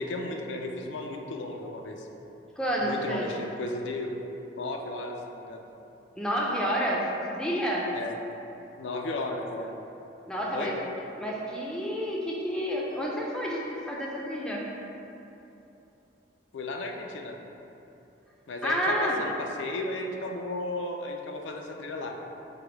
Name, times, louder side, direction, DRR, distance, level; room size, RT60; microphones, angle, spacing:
voice 1, 0.0-2.1 2.8-4.1 4.5-5.6 7.9-8.2 8.8-9.7 10.5-10.8 16.5-17.4 18.5-22.1, left 2 dB, 80° left, 2 dB, 0.4 m, -34 dB
voice 2, 2.6-3.3 6.2-7.0 7.3-7.9 10.3-10.7 11.2-14.6 18.6-19.2, equal, 5° left, -4 dB, 0.4 m, -29 dB
5.0 x 2.1 x 4.5 m, 2.9 s
head